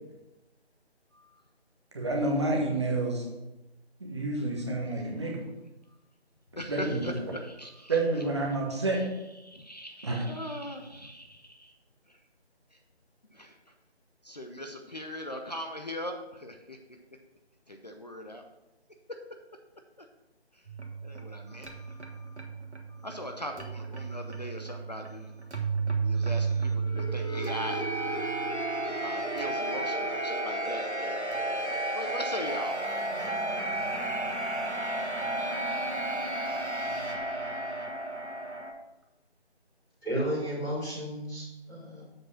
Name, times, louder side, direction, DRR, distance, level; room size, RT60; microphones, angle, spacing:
voice 1, 1.1-1.4 5.2-5.3 5.9-6.0 6.5-8.0 8.5-8.6 8.9-9.1 9.4-11.7 12.1-12.2 12.7-12.8 13.3-13.7 14.2-16.8 17.7-18.4 20.0-20.1 20.5-20.7 21.0-22.4 22.9-25.7 26.0-27.9 28.3-33.1, equal, 40° left, 4 dB, 0.6 m, -41 dB
voice 2, 1.9-3.3 4.0-5.4 6.7-7.2 7.9-9.0 10.0-10.2, right 2 dB, 25° right, -1 dB, 1.2 m, -29 dB
sound 1, 20.6-38.7, right 2 dB, 85° right, 1.6 m, -32 dB
voice 3, 40.0-42.0, equal, ahead, -18 dB, 1.0 m, -33 dB
7.6 x 4.8 x 5.9 m, 1.0 s
figure-of-eight pair, 160°, 33 cm